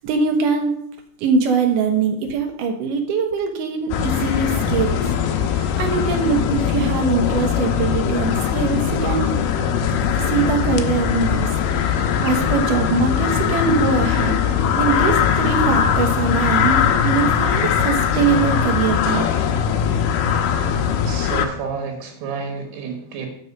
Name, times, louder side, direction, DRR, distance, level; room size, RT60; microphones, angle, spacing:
voice 1, 0.0-0.7 1.2-5.0 5.5-9.3 10.1-14.4 14.8-19.3, right 5 dB, 70° right, 4 dB, 2.4 m, -22 dB
sound 1, 3.9-21.5, left 8 dB, 80° left, 2.6 m, -20 dB
voice 2, 21.1-23.3, right 5 dB, 90° right, 2 dB, 3.4 m, -30 dB
7.7 x 5.5 x 6.4 m, 0.72 s
omnidirectional pair, 4.5 m